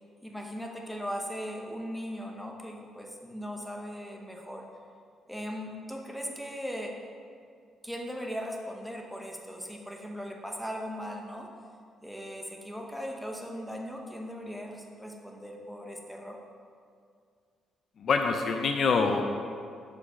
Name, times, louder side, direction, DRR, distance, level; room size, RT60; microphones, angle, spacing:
voice 1, 0.2-4.6 5.3-6.9 7.8-11.5 12.0-16.4, equal, ahead, 1 dB, 0.9 m, -38 dB
voice 2, 18.0-19.2, left 4 dB, 55° left, 5 dB, 0.5 m, -25 dB
5.6 x 5.1 x 4.9 m, 2.2 s
cardioid pair, 90°, 0 cm